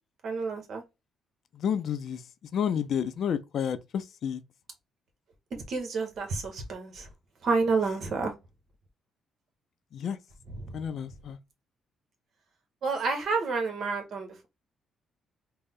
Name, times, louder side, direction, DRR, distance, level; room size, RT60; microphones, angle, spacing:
voice 1, 0.2-0.8 5.5-7.1 7.4-8.3 10.5-10.7 12.8-14.5, right 4 dB, 60° right, 1.3 m, -29 dB
voice 2, 1.5-2.2 2.5-4.4 9.9-10.2 10.7-11.4, left 8 dB, 65° left, 0.5 m, -30 dB
3.7 x 2.2 x 3.6 m
cardioid pair, 90°, 0 cm